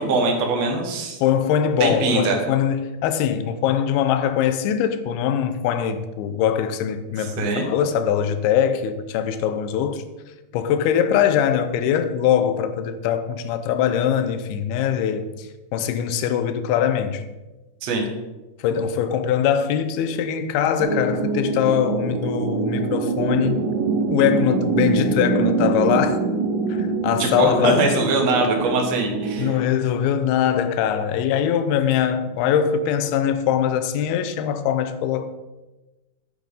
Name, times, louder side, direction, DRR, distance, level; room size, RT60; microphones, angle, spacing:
voice 1, 0.0-1.2 1.8-2.4 7.2-7.7 17.8-18.0 27.2-29.5, right 3 dB, 55° right, 2.1 m, -22 dB
voice 2, 1.2-10.0 10.5-15.5 15.7-17.2 18.6-23.7 24.1-26.2 26.7-28.0 29.4-35.3, left 9 dB, 85° left, 2.6 m, -22 dB
sound 1, 20.8-29.5, right 4 dB, 70° right, 2.4 m, -24 dB
9.3 x 9.3 x 4.0 m
omnidirectional pair, 4.5 m